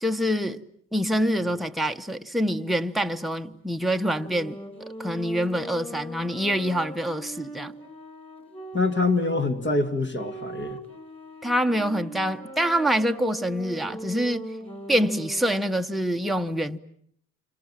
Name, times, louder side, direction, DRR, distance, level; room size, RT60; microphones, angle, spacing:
voice 1, 0.0-0.6 0.9-4.6 5.0-7.7 11.4-14.5 14.9-16.8, equal, ahead, 1.1 m, -25 dB
sound 1, 4.0-9.5 10.1-15.5, right 1 dB, 20° left, 6.8 m, -40 dB
voice 2, 8.7-10.8, left 3 dB, 40° left, 2.5 m, -25 dB
30.0 x 26.0 x 7.5 m
cardioid pair, 90°, 30 cm